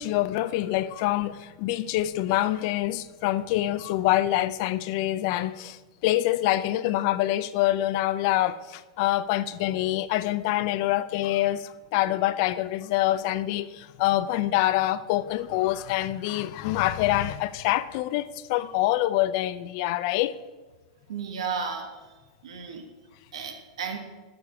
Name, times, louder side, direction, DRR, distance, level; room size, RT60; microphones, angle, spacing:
voice 1, 0.0-20.3, left 15 dB, 50° left, 0.4 m, -26 dB
voice 2, 21.1-22.1 22.4-22.8 23.3-24.0, right 6 dB, 85° right, 1.5 m, -33 dB
8.4 x 6.5 x 4.9 m
supercardioid pair, 140°, 3 cm